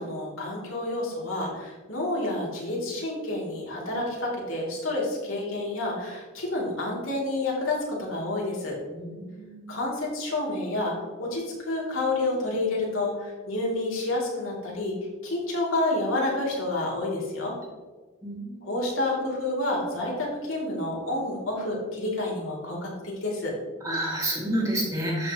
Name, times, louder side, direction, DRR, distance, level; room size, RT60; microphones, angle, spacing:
voice 1, 0.0-8.8 9.7-10.9 11.2-14.9 15.2-17.6 18.6-23.5, left 2 dB, 90° left, -3 dB, 2.9 m, -29 dB
voice 2, 8.9-9.8 18.2-18.7 23.8-25.3, right 1 dB, 15° right, -4 dB, 2.2 m, -30 dB
13.5 x 5.5 x 3.0 m, 1.3 s
head